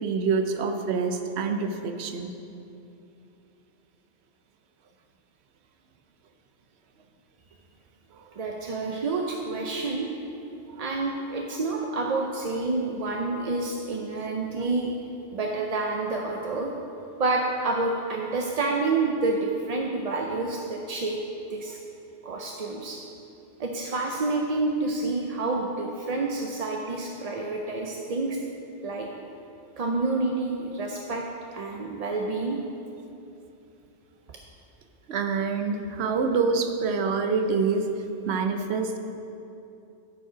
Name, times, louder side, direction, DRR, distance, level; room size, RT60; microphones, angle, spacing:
voice 1, 0.0-2.3 8.2-8.3 35.1-37.9 38.3-39.0, right 5 dB, 70° right, 6 dB, 0.9 m, -26 dB
voice 2, 8.4-10.1 10.8-14.9 15.3-16.7 17.2-21.2 21.5-21.8 22.2-23.0 23.6-28.4 28.8-29.1 29.8-31.2 31.5-32.6, right 3 dB, 45° right, 0 dB, 0.5 m, -28 dB
12.0 x 5.2 x 4.9 m, 2.8 s
omnidirectional pair, 1.1 m